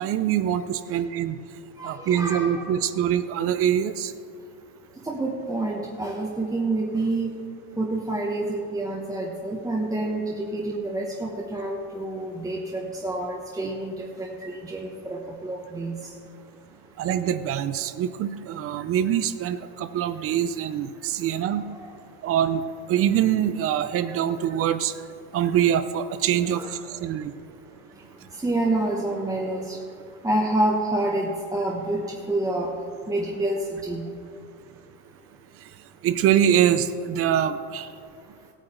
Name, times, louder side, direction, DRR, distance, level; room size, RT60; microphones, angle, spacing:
voice 1, 0.0-1.3 1.8-4.1 17.0-21.6 22.2-22.6 22.9-24.9 25.3-26.6 27.0-27.3 36.0-37.9, right 10 dB, 30° right, 12 dB, 0.5 m, -24 dB
voice 2, 1.8-2.6 5.0-7.3 7.8-16.1 21.3-22.0 26.5-27.0 28.3-29.8 30.2-32.7 33.1-34.0, right 2 dB, 10° right, -3 dB, 1.1 m, -28 dB
16.0 x 9.0 x 4.4 m, 2.3 s
supercardioid pair, 130°, 47 cm